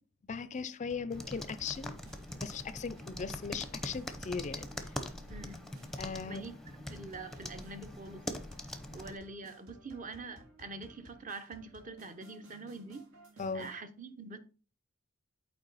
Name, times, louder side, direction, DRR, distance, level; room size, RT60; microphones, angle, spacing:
voice 1, 0.3-2.0 2.4-4.7 6.0-6.4 13.4-13.7, left 5 dB, 35° left, 0.4 m, -38 dB
sound 1, 0.9-13.8, right 1 dB, 85° right, 2.0 m, -57 dB
sound 2, 1.1-9.2, left 1 dB, ahead, 0.7 m, -43 dB
voice 2, 5.3-5.7 6.3-6.5 6.9-8.3 8.9-13.1 13.5-14.4, right 3 dB, 40° right, 0.8 m, -45 dB
8.0 x 4.5 x 4.1 m
head